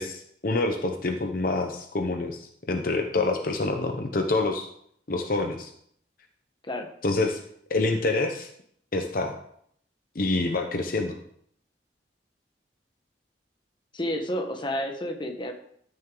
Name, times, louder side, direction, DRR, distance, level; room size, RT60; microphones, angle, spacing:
voice 1, 0.0-4.7 5.1-5.7 7.0-7.4 7.7-8.5 8.9-9.4 10.1-11.2, left 2 dB, 55° left, 5 dB, 0.8 m, -27 dB
voice 2, 13.9-15.5, equal, 25° left, 4 dB, 1.2 m, -30 dB
13.5 x 6.5 x 3.8 m, 0.67 s
head